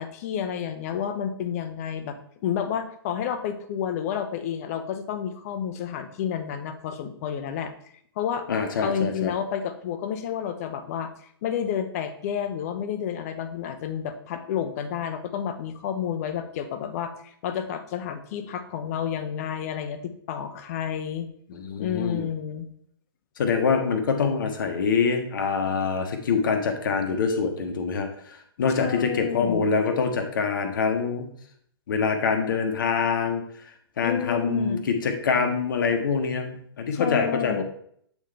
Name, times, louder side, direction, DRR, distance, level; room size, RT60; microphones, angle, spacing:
voice 1, 0.0-2.2 2.4-7.7 8.2-8.4 8.8-11.1 11.4-21.3 21.8-22.7 28.8-29.7 34.0-34.8 36.9-37.6, left 8 dB, 35° left, 10 dB, 0.7 m, -30 dB
voice 2, 8.5-9.3 21.5-22.3 23.4-31.3 31.9-33.4 34.0-37.6, left 5 dB, 55° left, 6 dB, 1.0 m, -25 dB
8.1 x 3.7 x 3.4 m, 0.64 s
figure-of-eight pair, 120°, 13 cm